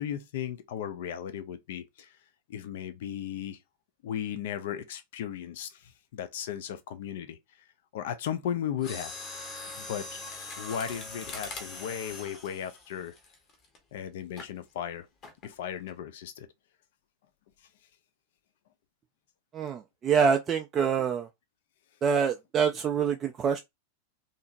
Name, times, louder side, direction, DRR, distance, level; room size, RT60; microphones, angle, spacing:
voice 1, 0.0-2.2 2.5-3.6 4.0-7.4 7.9-9.3 9.7-10.2 10.6-13.1 13.9-15.1 15.4-16.5, left 9 dB, 55° left, 0.4 m, -36 dB
Mechanisms, 8.8-13.8 14.4-14.6 15.2-15.5 15.9-16.0, left 3 dB, 35° left, 1.0 m, -41 dB
voice 2, 19.5-21.3 22.0-23.6, right 6 dB, 25° right, 0.3 m, -26 dB
2.8 x 2.5 x 2.4 m
figure-of-eight pair, 90°, 0 cm